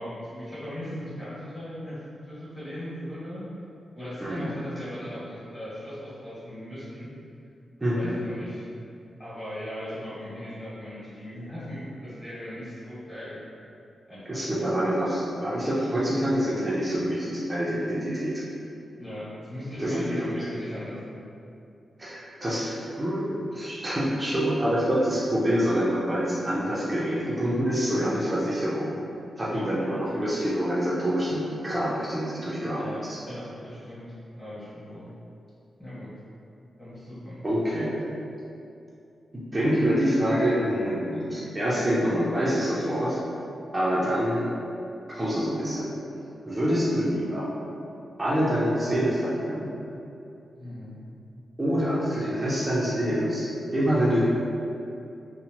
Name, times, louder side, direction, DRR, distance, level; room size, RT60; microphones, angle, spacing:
voice 1, 0.0-2.0 2.2-3.4 3.9-7.1 7.9-8.6 9.2-13.4 14.1-14.5 19.0-21.2 29.4-29.6 32.7-34.1 34.4-35.1 35.8-36.1 36.8-37.4 50.6-51.0, equal, 10° left, -13 dB, 1.1 m, -38 dB
voice 2, 7.8-8.1 14.3-18.4 19.8-20.3 22.0-28.9 29.4-33.2 37.4-38.0 39.3-43.2 43.7-44.5 45.1-45.9 46.5-47.5 48.2-49.7 51.6-54.2, equal, 15° right, -8 dB, 0.4 m, -26 dB
2.7 x 2.0 x 2.9 m, 2.6 s
wide cardioid pair, 125°, 0 cm